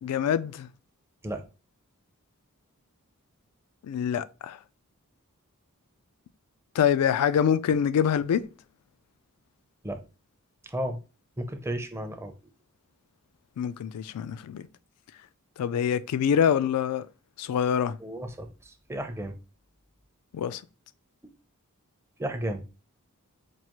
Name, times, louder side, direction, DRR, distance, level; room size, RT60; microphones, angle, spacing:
voice 1, 0.0-0.7 3.8-4.6 6.7-8.4 13.6-14.6 15.6-17.1 17.4-18.0 20.3-20.6, left 8 dB, 90° left, 0.3 m, -25 dB
voice 2, 10.6-11.0 11.4-12.3 18.0-19.4 22.2-22.6, right 1 dB, 10° right, 0.4 m, -33 dB
4.6 x 2.4 x 2.9 m
head